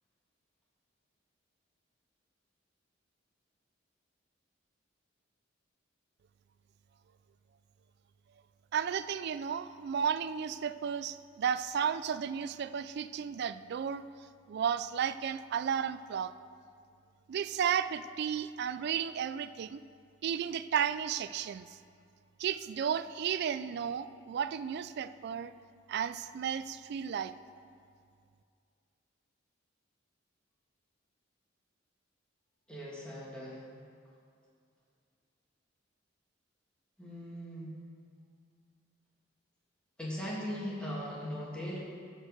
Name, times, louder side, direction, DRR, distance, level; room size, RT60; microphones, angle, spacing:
voice 1, 8.7-14.1 14.5-16.3 17.3-19.8 20.2-21.6 22.4-25.5 25.9-27.3, right 8 dB, 55° right, 13 dB, 0.3 m, -33 dB
voice 2, 32.7-33.6 37.0-37.8 40.0-41.8, equal, 5° left, -6 dB, 2.0 m, -39 dB
12.5 x 4.5 x 6.4 m, 2.2 s
head